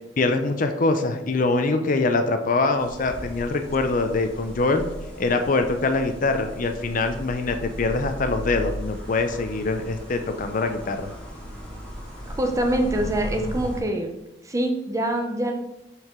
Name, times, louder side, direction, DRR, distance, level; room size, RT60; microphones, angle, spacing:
voice 1, 0.2-4.8 5.2-11.1, left 3 dB, 45° left, 7 dB, 0.5 m, -24 dB
sound 1, 2.8-13.8, equal, 5° left, 2.2 m, -36 dB
voice 2, 12.3-14.1 14.4-15.5, right 1 dB, 15° right, 4 dB, 0.7 m, -24 dB
5.8 x 4.6 x 3.7 m, 0.90 s
head